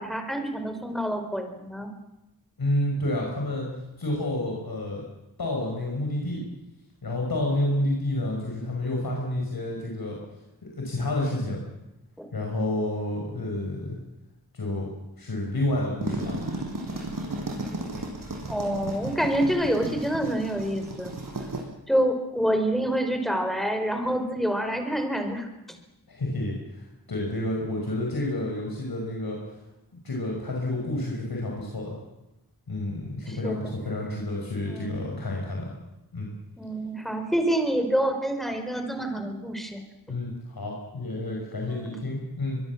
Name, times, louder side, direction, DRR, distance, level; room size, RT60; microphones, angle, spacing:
voice 1, 0.0-1.9 12.2-12.3 18.5-21.1 21.9-25.8 33.3-33.7 34.6-35.1 36.6-39.8 40.1-40.2 41.7-42.0, right 1 dB, ahead, 6 dB, 4.6 m, -27 dB
voice 2, 2.6-3.7 4.0-5.1 5.4-6.4 7.0-10.2 10.6-11.6 12.3-14.0 14.5-14.9 15.2-16.4 26.1-29.4 30.0-32.0 32.7-35.7 36.1-36.3 40.1-42.6, left 1 dB, 70° left, -1 dB, 5.7 m, -29 dB
sound 1, 16.0-21.6, right 2 dB, 60° right, 6.9 m, -34 dB
24.0 x 23.0 x 7.4 m, 0.97 s
wide cardioid pair, 70°, 38 cm